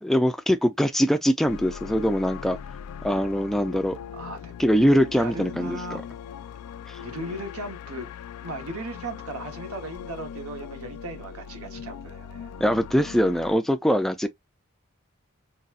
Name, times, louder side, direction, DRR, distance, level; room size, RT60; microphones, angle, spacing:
voice 1, 0.0-2.6 3.0-4.0 4.6-6.0 6.9-7.0 12.6-14.3, equal, ahead, 0.3 m, -22 dB
sound 1, 1.5-13.6, left 8 dB, 90° left, 0.3 m, -40 dB
voice 2, 4.1-4.7 5.2-6.0 7.0-8.1 8.4-12.5, right 2 dB, 80° right, 1.1 m, -37 dB
4.0 x 2.2 x 2.4 m
head